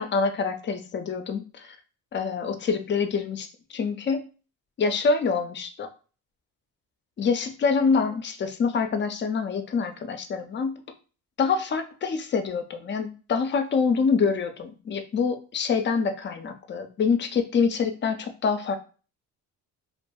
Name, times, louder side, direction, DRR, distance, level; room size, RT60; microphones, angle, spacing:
voice 1, 0.0-1.8 2.1-4.2 4.8-5.9 7.2-10.8 11.4-18.8, left 5 dB, 30° left, 8 dB, 0.4 m, -26 dB
2.6 x 2.4 x 2.2 m, 0.36 s
cardioid pair, 95°, 36 cm